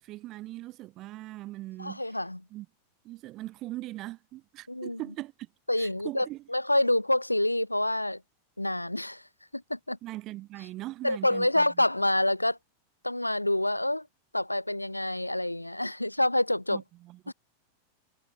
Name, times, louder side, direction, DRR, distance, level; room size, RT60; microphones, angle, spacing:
voice 1, 0.0-2.2 2.5-2.7 3.0-5.5 5.8-6.4 10.0-11.7 16.7-17.3, right 17 dB, 35° right, 2.1 m, -40 dB
voice 2, 1.8-2.4 4.7-5.0 5.7-8.2 8.6-9.2 9.5-10.0 11.0-12.6 13.0-14.1 14.3-16.8 17.3-17.4, left 1 dB, 85° left, 1.0 m, -27 dB
figure-of-eight pair, 90°, 0 cm